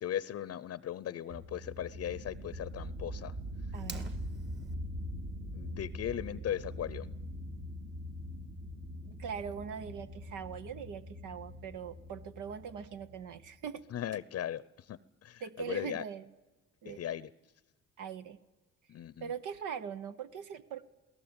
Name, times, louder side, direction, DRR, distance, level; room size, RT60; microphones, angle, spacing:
voice 1, 0.0-3.4 5.5-7.1 13.9-16.0 16.8-17.3 18.9-19.3, left 11 dB, 55° left, 18 dB, 0.7 m, -38 dB
sound 1, 1.3-13.7, equal, 60° right, 2.8 m, -43 dB
Fire, 3.7-4.7, right 3 dB, 35° right, 2.3 m, -45 dB
voice 2, 3.7-4.2 9.0-13.8 15.4-16.3 16.8-17.0 18.0-18.4 19.2-20.8, right 7 dB, 85° right, 12 dB, 1.0 m, -41 dB
21.0 x 18.0 x 8.8 m, 1.1 s
cardioid pair, 90°, 30 cm